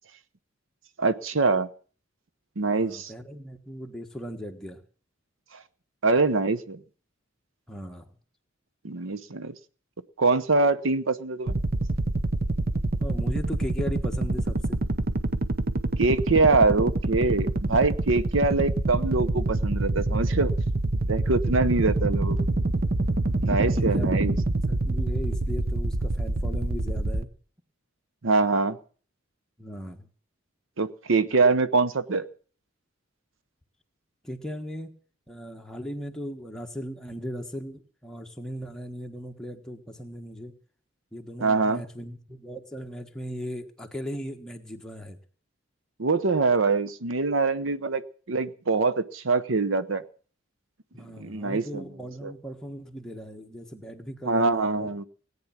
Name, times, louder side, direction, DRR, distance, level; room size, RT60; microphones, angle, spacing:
voice 1, 1.0-1.7 2.6-3.1 6.0-6.8 8.8-9.5 10.2-11.6 16.0-20.5 21.1-22.4 23.4-24.3 28.2-28.8 30.8-32.2 41.4-41.8 46.0-48.0 48.3-50.0 51.2-51.8 52.2-52.3 54.2-55.0, right 3 dB, 80° right, 14 dB, 0.8 m, -24 dB
voice 2, 2.7-4.8 7.7-8.1 13.0-14.8 21.8-22.0 23.8-24.3 24.7-27.3 29.6-30.1 34.2-34.9 35.3-40.5 41.1-45.2 50.9-54.9, equal, 5° left, 2 dB, 1.5 m, -38 dB
sound 1, 11.5-27.2, right 2 dB, 50° right, 0.9 m, -26 dB
17.5 x 9.5 x 7.3 m, 0.42 s
head